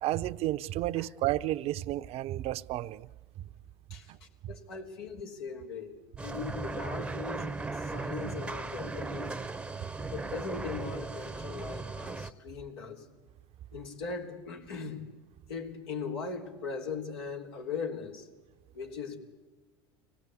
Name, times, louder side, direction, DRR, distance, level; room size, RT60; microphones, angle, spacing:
voice 1, 0.0-3.1 9.5-9.6, right 15 dB, 55° right, 0.8 m, -31 dB
voice 2, 3.9-5.9 6.2-9.4 10.1-13.1 13.7-15.1 15.5-18.3 18.7-19.2, left 5 dB, 85° left, 3.5 m, -39 dB
sound 1, 6.2-12.3, right 3 dB, 10° right, 0.9 m, -37 dB
24.5 x 18.0 x 8.5 m
hypercardioid pair, 95°, 13 cm